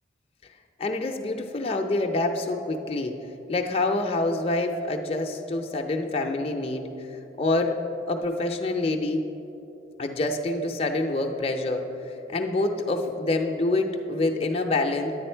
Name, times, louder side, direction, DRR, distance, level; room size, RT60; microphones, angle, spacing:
voice 1, 0.8-3.1 3.5-6.9 7.4-7.8 8.1-9.2 10.0-11.8 12.3-15.1, left 2 dB, 30° left, 2 dB, 0.5 m, -26 dB
10.0 x 9.0 x 4.4 m, 3.0 s
head